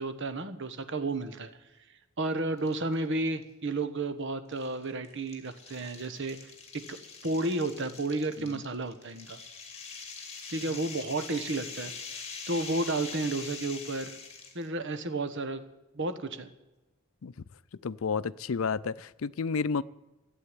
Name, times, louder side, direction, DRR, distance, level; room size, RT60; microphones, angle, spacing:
voice 1, 0.0-1.5 2.2-7.0 7.2-9.4 10.5-11.9 12.5-14.2 14.5-15.6 15.9-16.5, right 2 dB, 60° right, 10 dB, 1.3 m, -32 dB
sound 1, 2.6-3.0 3.4-3.5 4.5-14.7, left 5 dB, 30° left, 2.4 m, -44 dB
voice 2, 17.8-19.8, left 5 dB, 75° left, 17 dB, 0.5 m, -31 dB
14.5 x 8.0 x 9.9 m, 1.0 s
head